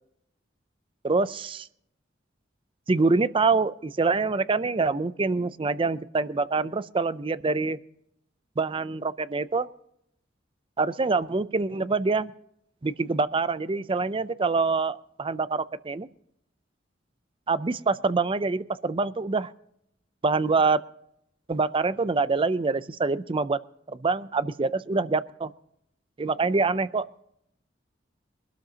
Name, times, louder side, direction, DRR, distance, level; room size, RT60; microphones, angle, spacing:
voice 1, 1.0-1.7 2.9-7.8 8.6-9.7 10.8-12.3 12.8-16.1 17.5-19.5 20.2-20.8 21.5-23.6 23.9-25.5 26.2-27.1, right 4 dB, 30° right, 15 dB, 0.5 m, -25 dB
23.5 x 12.5 x 2.9 m, 0.74 s
head